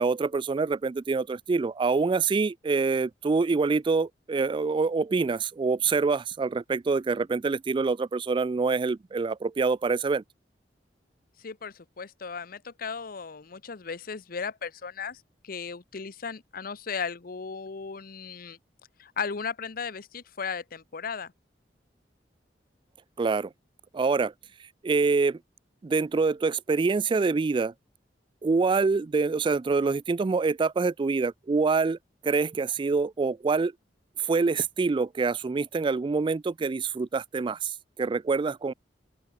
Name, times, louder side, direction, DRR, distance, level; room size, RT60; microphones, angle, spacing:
voice 1, 0.0-10.2 23.2-23.5 23.9-24.3 24.8-25.4 25.8-27.7 28.4-32.0 32.2-33.7 34.2-38.7, right 4 dB, 30° right, 0.3 m, -26 dB
voice 2, 11.4-18.6 19.0-21.3, left 5 dB, 55° left, 0.8 m, -36 dB
open air
head